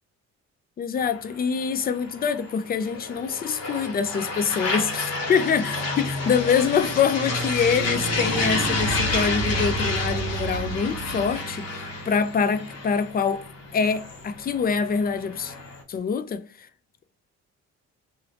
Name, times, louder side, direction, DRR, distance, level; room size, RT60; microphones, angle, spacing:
voice 1, 0.8-13.4 13.7-15.5 15.9-16.7, left 6 dB, 30° left, 0.4 m, -25 dB
sound 1, 1.0-15.8, left 2 dB, 55° left, 1.0 m, -30 dB
sound 2, 5.9-11.3, right 2 dB, 40° right, 0.7 m, -35 dB
2.8 x 2.0 x 2.7 m
cardioid pair, 90°, 30 cm